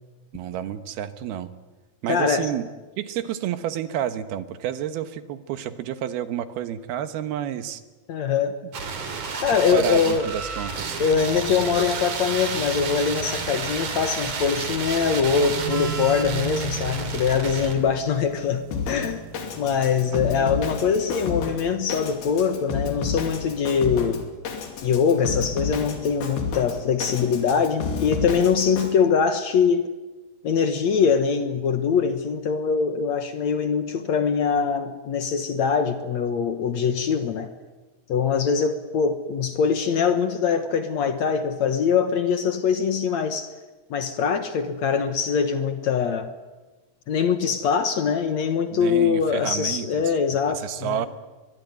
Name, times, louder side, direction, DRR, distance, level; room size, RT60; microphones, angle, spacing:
voice 1, 0.3-1.5 2.0-2.7 3.0-7.8 9.5-11.0 20.1-20.6 48.7-50.1 50.5-51.1, right 10 dB, 85° right, 11 dB, 3.2 m, -30 dB
voice 2, 2.1-2.5 8.1-8.6 9.3-10.3 11.0-19.2 19.6-24.3 24.8-29.9 30.4-37.5 38.1-43.5 43.9-46.3 47.1-51.0, left 6 dB, 60° left, 9 dB, 2.1 m, -23 dB
sound 1, 8.7-17.7, right 5 dB, 55° right, 4.1 m, -31 dB
sound 2, 10.8-20.4, right 8 dB, 70° right, 2.7 m, -38 dB
Drum kit, 18.7-28.9, left 5 dB, 85° left, 4.6 m, -31 dB
23.0 x 22.5 x 9.6 m, 1.2 s
omnidirectional pair, 4.3 m